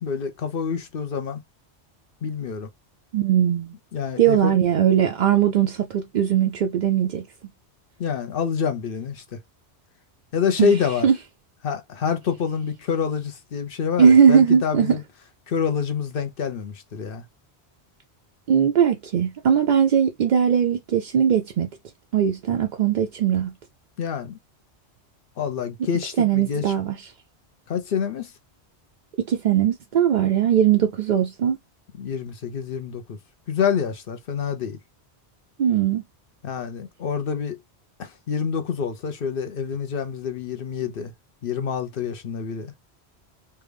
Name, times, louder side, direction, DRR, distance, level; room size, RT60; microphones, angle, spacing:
voice 1, 0.0-1.4 2.2-2.7 3.9-4.6 8.0-9.4 10.3-11.1 11.6-15.0 15.5-17.2 24.0-24.4 25.4-26.7 27.7-28.3 32.0-33.2 33.5-34.8 36.4-37.6 38.0-41.1 41.4-42.7, left 6 dB, 60° left, 0.8 m, -27 dB
voice 2, 3.1-3.7 4.2-7.2 10.6-10.8 11.0-11.1 14.0-15.0 18.5-21.7 22.1-23.5 26.2-26.9 29.3-31.6 35.6-36.0, right 8 dB, 60° right, 0.5 m, -19 dB
3.3 x 2.3 x 3.2 m
omnidirectional pair, 1.1 m